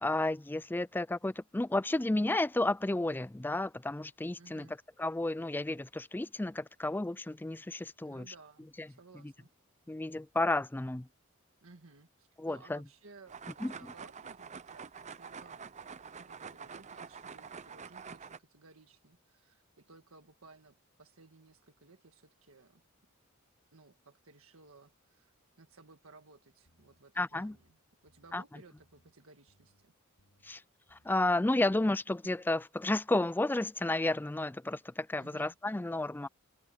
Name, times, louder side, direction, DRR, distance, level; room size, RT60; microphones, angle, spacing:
voice 1, 0.0-4.7 5.0-8.3 8.8-8.9 9.9-11.1 12.4-12.8 13.6-13.7 27.2-27.5 28.3-28.4 30.4-30.6 30.9-36.3, left 2 dB, 10° left, 0.4 m, -32 dB
voice 2, 4.4-4.8 8.0-9.5 11.6-22.8 23.7-29.9 35.1-35.6, right 3 dB, 70° right, 1.8 m, -58 dB
sound 1, 13.3-18.4, right 6 dB, 35° right, 0.7 m, -47 dB
sound 2, 26.6-27.0 27.3-27.7 28.1-28.4 28.8-29.1 29.5-29.8 30.2-30.5 30.9-31.2 31.6-32.0, equal, 65° left, 7.7 m, -69 dB
head